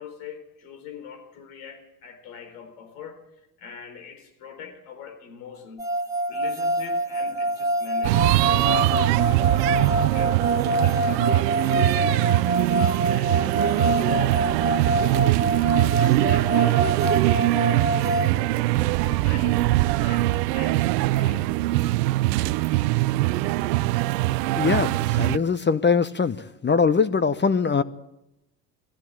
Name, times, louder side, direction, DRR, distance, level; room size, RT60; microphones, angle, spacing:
voice 1, 0.0-5.9 6.3-10.3 10.7-12.4 12.7-20.9 21.1-21.5, left 6 dB, 70° left, 6 dB, 4.2 m, -43 dB
sound 1, 5.8-18.3, right 1 dB, 5° right, 1.9 m, -26 dB
sound 2, 8.0-25.4, right 18 dB, 75° right, 0.7 m, -22 dB
voice 2, 24.5-26.4 26.6-27.8, left 5 dB, 20° left, 13 dB, 1.0 m, -22 dB
20.0 x 15.5 x 8.7 m, 0.85 s
hypercardioid pair, 65°, 50 cm